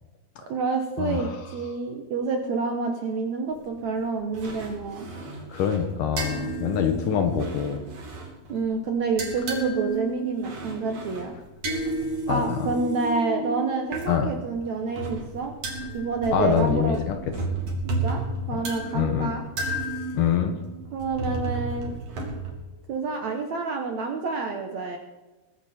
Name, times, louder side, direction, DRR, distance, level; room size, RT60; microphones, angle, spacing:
voice 1, 0.4-5.1 8.5-11.3 12.3-15.5 15.9-17.0 18.0-18.2 18.5-19.4 20.9-21.9 22.9-25.0, right 4 dB, 65° right, 4 dB, 1.9 m, -28 dB
voice 2, 1.0-1.4 5.5-7.8 12.3-12.7 14.1-14.3 16.3-17.2 18.5-18.6 18.9-19.3 20.1-20.6, left 8 dB, 70° left, 6 dB, 2.2 m, -25 dB
sound 1, 3.5-4.0 4.3-8.7 9.0-14.1 14.7-22.5, right 2 dB, 40° right, 3.4 m, -32 dB
22.0 x 10.5 x 4.3 m, 1.1 s
omnidirectional pair, 4.6 m